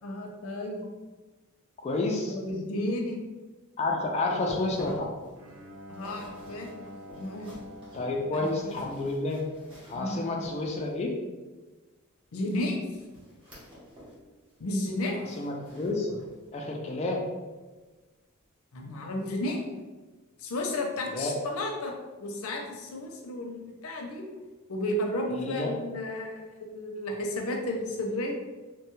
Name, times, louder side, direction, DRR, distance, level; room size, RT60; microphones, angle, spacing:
voice 1, 0.0-0.8 2.3-3.2 5.9-6.8 7.2-7.5 8.3-8.8 9.9-10.3 12.3-12.8 14.6-15.2 18.7-19.6 20.4-24.3 24.7-28.3, left 1 dB, 85° left, 1 dB, 0.5 m, -33 dB
voice 2, 1.8-2.4 3.8-5.1 7.9-9.4 9.9-11.2 15.4-16.2 16.5-17.2 21.1-21.3 25.3-25.7, left 2 dB, 30° left, 0 dB, 0.3 m, -30 dB
sound 1, 4.3-11.0 12.4-14.2 14.5-16.5 16.9-17.1 17.6-17.7, equal, 25° right, 1.0 m, -48 dB
Bowed string instrument, 5.3-9.7, equal, 75° right, 0.5 m, -47 dB
3.0 x 2.2 x 3.0 m, 1.3 s
head